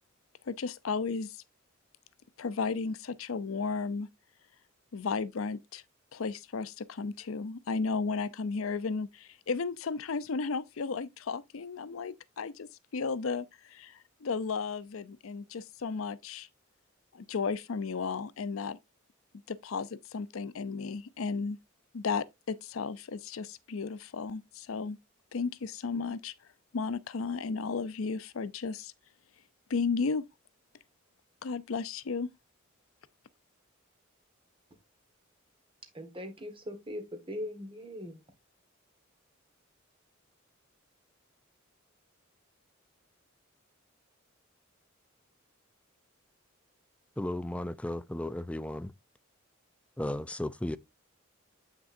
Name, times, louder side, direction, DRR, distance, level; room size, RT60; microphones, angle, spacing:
voice 1, 0.5-1.4 2.4-4.1 4.9-5.8 6.1-12.7 12.9-16.5 17.1-18.8 19.5-21.6 21.9-25.0 25.3-26.3 26.7-28.9 29.7-30.2 31.4-32.3, left 4 dB, 80° left, 0.5 m, -34 dB
voice 2, 35.9-38.2, left 1 dB, 25° right, 1.6 m, -40 dB
voice 3, 47.2-48.9 50.0-50.8, left 1 dB, 5° left, 0.4 m, -34 dB
8.1 x 6.0 x 2.6 m
head